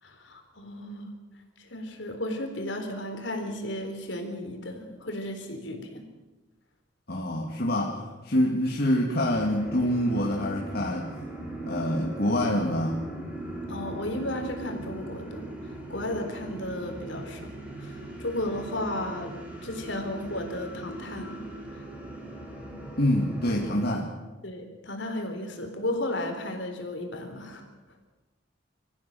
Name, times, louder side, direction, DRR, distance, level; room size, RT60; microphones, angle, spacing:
voice 1, 0.0-1.1 1.6-6.0 13.7-15.5 15.9-17.5 17.8-21.4 21.7-21.8 24.4-27.6, left 1 dB, 70° left, 4 dB, 4.0 m, -34 dB
voice 2, 7.1-11.1 11.7-13.0 23.0-24.1, left 1 dB, 55° left, -1 dB, 2.3 m, -26 dB
sound 1, 9.2-23.8, right 1 dB, 10° right, 5.4 m, -39 dB
26.0 x 15.0 x 7.8 m, 1.2 s
head